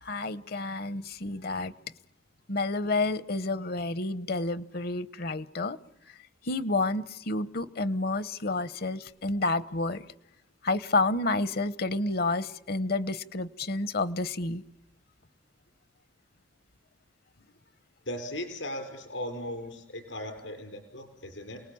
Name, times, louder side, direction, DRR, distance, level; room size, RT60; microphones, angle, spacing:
voice 1, 0.0-1.7 2.5-5.8 6.4-10.1 10.6-14.6, left 2 dB, 55° left, 17 dB, 0.9 m, -30 dB
voice 2, 18.1-21.6, left 1 dB, 85° left, 6 dB, 5.4 m, -37 dB
29.0 x 19.5 x 8.6 m, 0.80 s
head